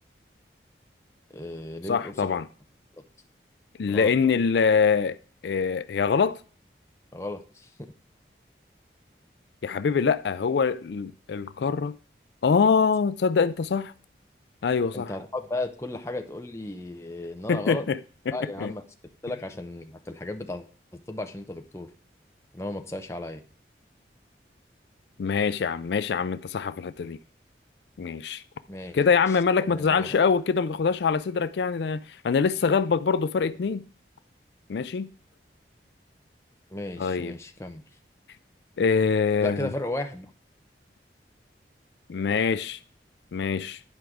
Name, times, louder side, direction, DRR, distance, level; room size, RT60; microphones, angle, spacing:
voice 1, 1.3-2.3 3.9-4.3 7.1-7.7 14.9-17.9 18.3-18.8 19.2-20.6 20.9-21.9 22.5-23.4 28.7-30.1 36.7-37.8 39.4-40.3, left 2 dB, 15° left, 0.7 m, -35 dB
voice 2, 1.9-2.5 3.8-5.2 5.4-6.4 9.6-11.9 12.4-13.9 14.6-15.1 17.5-18.0 18.3-18.7 25.2-27.2 28.0-28.4 28.9-33.8 34.7-35.1 37.0-37.3 38.8-39.7 42.1-42.8 43.3-43.8, left 5 dB, 75° left, 0.4 m, -24 dB
10.0 x 4.6 x 4.9 m
head